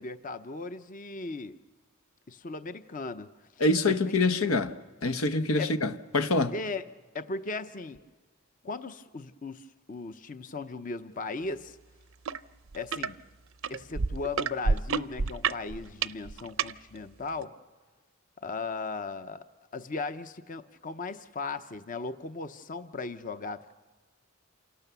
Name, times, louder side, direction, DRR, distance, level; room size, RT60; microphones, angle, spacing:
voice 1, 0.0-1.6 2.3-3.3 3.8-4.0 5.6-5.8 6.5-6.8 7.1-8.0 8.6-11.8 12.7-13.2 13.7-17.5 18.4-19.4 19.7-23.7, left 3 dB, 40° left, 0.7 m, -37 dB
voice 2, 3.6-4.7 5.0-6.5, left 2 dB, 90° left, 1.0 m, -25 dB
sound 1, 12.2-12.4 12.7-13.1 13.6-16.7 17.4-17.5, right 5 dB, 70° right, 0.6 m, -28 dB
28.0 x 18.5 x 6.9 m
head